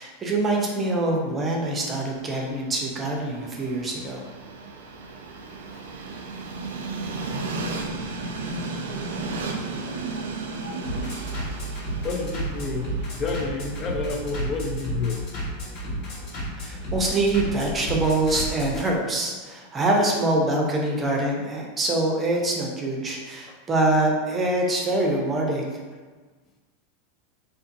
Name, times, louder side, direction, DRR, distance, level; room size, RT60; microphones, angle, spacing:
voice 1, 0.0-4.2 16.6-25.7, right 2 dB, 25° right, 0 dB, 0.5 m, -24 dB
Train, 1.6-17.7, right 3 dB, 80° right, 0.3 m, -36 dB
Bass drum, 3.8-18.8, right 1 dB, 65° left, 1.3 m, -33 dB
voice 2, 8.4-8.9 12.0-15.2 23.5-23.6, left 4 dB, 40° left, 1 dB, 0.4 m, -30 dB
2.5 x 2.4 x 2.5 m, 1.4 s
hypercardioid pair, 105°, 0 cm